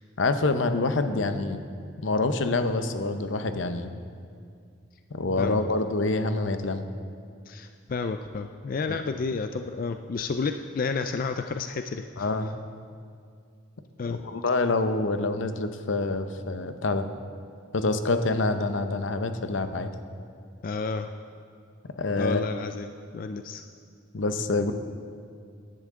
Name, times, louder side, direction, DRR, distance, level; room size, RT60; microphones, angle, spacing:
voice 1, 0.2-1.6 2.0-3.9 5.1-6.8 12.2-12.5 14.0-17.1 17.7-19.9 22.0-22.5 24.1-24.7, left 3 dB, 80° left, 9 dB, 0.7 m, -26 dB
voice 2, 7.5-12.3 14.0-14.2 20.6-21.1 22.2-22.9 23.1-23.7, left 4 dB, 45° left, 7 dB, 0.4 m, -31 dB
17.5 x 10.5 x 3.7 m, 2.2 s
head